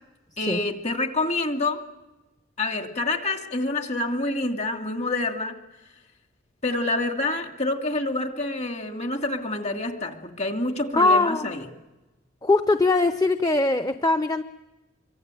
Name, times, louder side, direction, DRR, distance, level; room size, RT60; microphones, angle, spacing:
voice 1, 0.4-1.8 2.6-5.6 6.6-11.7, left 2 dB, 35° left, 5 dB, 2.6 m, -27 dB
voice 2, 10.9-11.6 12.4-14.4, left 2 dB, 20° left, 9 dB, 0.8 m, -21 dB
26.5 x 24.5 x 9.1 m, 1.1 s
head